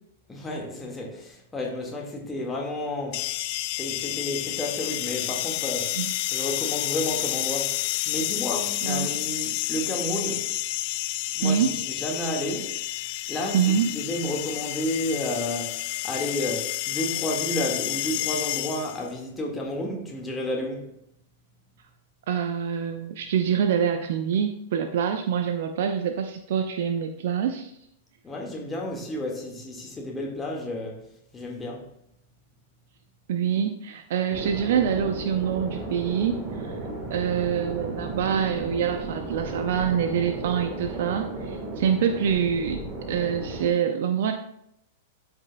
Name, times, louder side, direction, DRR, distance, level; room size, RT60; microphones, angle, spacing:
voice 1, 0.3-3.3 3.7-6.0 6.3-10.5 11.3-13.0 13.3-20.9 28.2-31.0 31.3-31.9, left 1 dB, 15° left, 1.7 m, -31 dB
sound 1, 3.1-19.1, left 17 dB, 50° left, 0.3 m, -30 dB
voice 2, 8.8-9.2 11.4-11.7 13.5-13.9 22.3-27.7 33.3-36.7 37.1-42.8 43.1-44.3, right 8 dB, 55° right, 0.6 m, -25 dB
sound 2, 34.3-43.7, right 2 dB, 30° right, 1.4 m, -35 dB
13.0 x 5.2 x 2.2 m
figure-of-eight pair, 100°, 0 cm